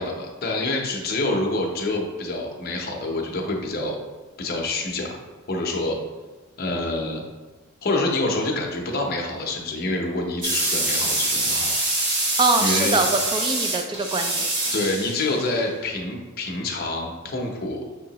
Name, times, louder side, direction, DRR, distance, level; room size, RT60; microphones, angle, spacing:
voice 1, 0.0-4.0 4.4-5.1 5.5-6.0 6.6-7.2 7.8-11.7 12.6-13.0 14.7-17.8, left 2 dB, 45° left, 0 dB, 0.7 m, -27 dB
sound 1, 10.4-15.5, right 2 dB, 55° right, 1.2 m, -25 dB
voice 2, 12.4-14.5, right 3 dB, 20° right, 5 dB, 0.3 m, -23 dB
6.2 x 2.8 x 2.8 m, 1.2 s
head